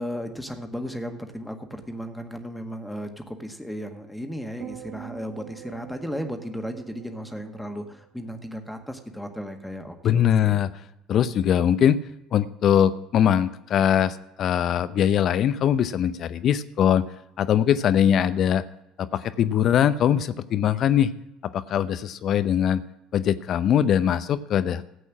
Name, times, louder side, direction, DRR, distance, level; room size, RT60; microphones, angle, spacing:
voice 1, 0.0-10.6, equal, 5° left, 5 dB, 1.8 m, -35 dB
sound 1, 4.6-9.0 9.3-9.7, right 11 dB, 60° right, 1.4 m, -45 dB
voice 2, 10.0-10.7 11.1-12.0 12.3-17.0 17.4-18.6 19.0-21.1 21.4-22.8 23.1-25.0, left 9 dB, 50° left, 14 dB, 0.7 m, -21 dB
14.5 x 8.3 x 6.2 m, 0.90 s
hypercardioid pair, 65°, 0 cm